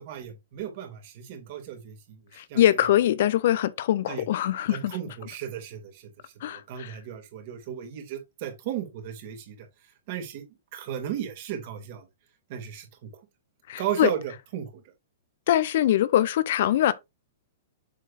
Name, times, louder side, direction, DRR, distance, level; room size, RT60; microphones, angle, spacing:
voice 1, 0.0-2.8 4.1-4.2 4.7-6.1 6.4-9.6 10.1-10.4 10.7-12.1 12.5-13.1 13.8-14.8, right 10 dB, 45° right, 2.3 m, -35 dB
voice 2, 2.3-5.0 6.4-7.0 13.7-14.1 15.5-16.9, left 12 dB, 55° left, 0.6 m, -23 dB
7.5 x 6.5 x 2.5 m
figure-of-eight pair, 105°, 0 cm